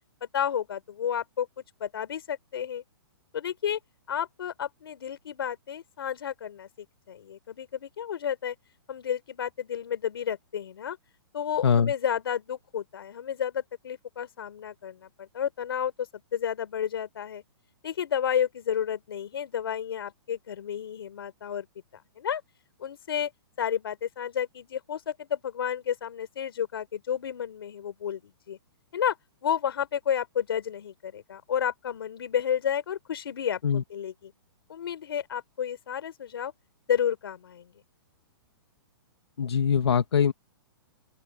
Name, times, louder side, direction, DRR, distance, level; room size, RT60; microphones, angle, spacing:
voice 1, 0.2-2.8 3.3-3.8 4.1-8.6 8.9-11.0 11.3-17.4 17.8-21.7 22.2-22.4 22.8-23.3 23.6-28.6 28.9-29.2 29.4-34.3 34.7-36.5 36.9-37.7, left 9 dB, 65° left, 4.5 m, -31 dB
voice 2, 11.6-11.9 33.6-33.8 39.4-40.3, left 7 dB, 85° left, 2.4 m, -22 dB
open air
hypercardioid pair, 170°, 13 cm